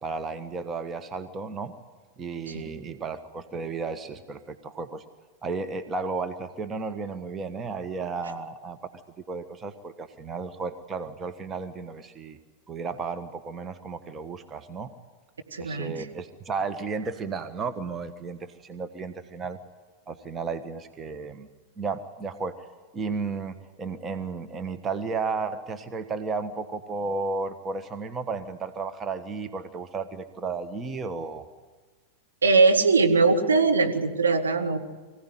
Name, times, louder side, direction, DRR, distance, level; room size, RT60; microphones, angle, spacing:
voice 1, 0.0-1.7 2.2-5.0 5.4-8.8 9.3-12.4 12.7-14.9 15.6-19.6 20.1-21.5 21.8-22.7 22.9-31.5, right 4 dB, 20° right, 9 dB, 1.3 m, -33 dB
voice 2, 15.5-16.1 32.4-34.8, right 4 dB, 75° right, 3 dB, 2.3 m, -21 dB
24.0 x 16.5 x 10.0 m, 1.4 s
figure-of-eight pair, 90°, 0 cm